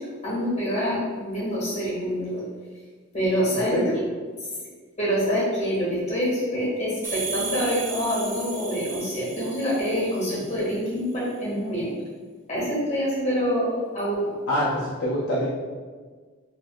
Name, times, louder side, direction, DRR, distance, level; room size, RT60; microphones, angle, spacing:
voice 1, 0.2-2.4 3.1-3.8 5.0-12.0 12.5-14.2, equal, 30° left, -7 dB, 1.3 m, -26 dB
voice 2, 3.5-4.0 14.5-15.5, equal, 60° left, -8 dB, 0.5 m, -25 dB
sound 1, 7.0-10.6, right 5 dB, 10° right, 0.6 m, -35 dB
3.4 x 2.6 x 2.3 m, 1.5 s
head